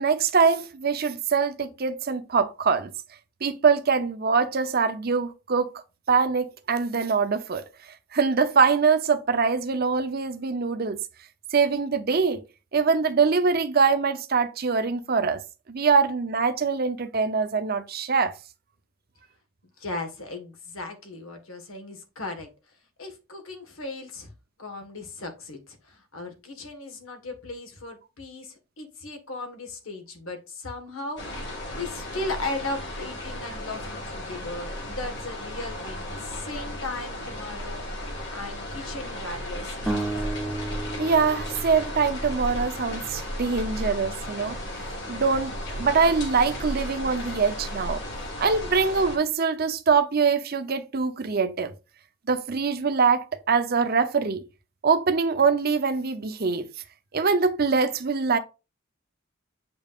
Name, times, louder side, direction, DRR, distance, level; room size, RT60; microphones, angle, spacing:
voice 1, 0.0-2.9 3.4-5.8 6.1-7.6 8.1-11.0 11.5-12.4 12.7-15.4 15.7-18.3 41.0-44.6 45.1-48.0 48.4-51.7 52.3-54.4 54.8-56.7 57.1-58.4, right 5 dB, 45° right, 0.7 m, -23 dB
voice 2, 19.8-22.5 23.0-24.3 24.6-37.8 38.1-40.3, left 2 dB, 80° left, 1.5 m, -37 dB
sound 1, 31.2-49.2, left 1 dB, 55° left, 2.3 m, -35 dB
sound 2, 39.9-43.0, right 2 dB, ahead, 0.7 m, -33 dB
7.8 x 5.3 x 2.4 m
head